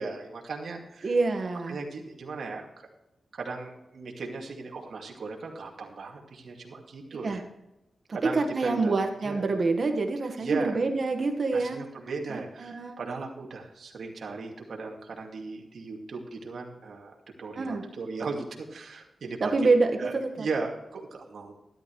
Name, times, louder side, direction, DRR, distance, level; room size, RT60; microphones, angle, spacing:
voice 1, 0.0-1.1 1.7-2.7 3.3-7.4 8.1-8.9 9.2-9.4 10.4-10.7 11.5-19.7 20.0-21.5, right 4 dB, 70° right, 0 dB, 2.4 m, -37 dB
voice 2, 1.0-1.8 7.2-7.4 8.3-11.8 12.3-13.0 17.6-17.8 19.4-20.5, right 3 dB, 50° right, 4 dB, 1.6 m, -26 dB
12.5 x 12.0 x 3.2 m, 0.90 s
wide cardioid pair, 110°, 0 cm